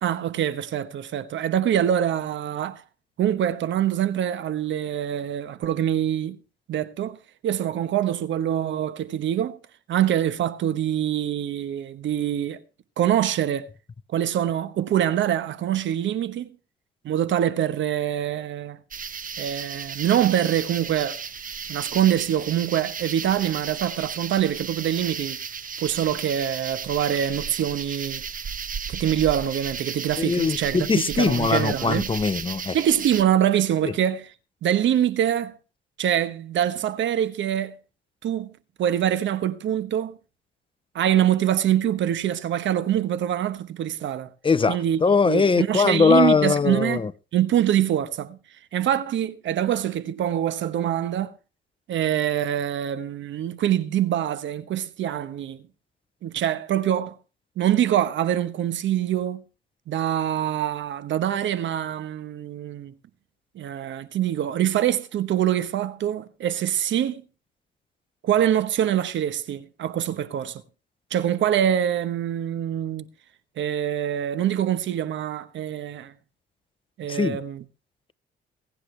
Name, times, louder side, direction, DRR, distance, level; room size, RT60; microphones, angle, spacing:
voice 1, 0.0-2.8 3.2-6.4 6.7-7.2 7.4-9.6 9.9-12.6 13.0-13.7 14.1-16.6 17.0-18.8 19.4-21.2 21.7-25.4 25.8-28.2 28.9-32.1 32.7-34.3 34.6-35.6 36.0-37.8 38.2-38.5 38.8-40.2 40.9-44.3 44.7-45.0 45.2-47.0 47.3-48.4 48.7-51.3 51.9-55.7 56.2-57.2 57.6-59.4 59.9-62.9 63.5-67.2 68.2-70.6 71.1-73.1 73.6-76.1 77.0-77.6, right 10 dB, 70° right, 1.2 m, -24 dB
sound 1, 18.9-33.2, right 6 dB, 45° right, 1.3 m, -34 dB
voice 2, 30.2-32.8 33.8-33.9 44.4-47.1 77.1-77.4, left 4 dB, 25° left, 0.7 m, -21 dB
21.5 x 9.9 x 3.3 m
cardioid pair, 90°, 20 cm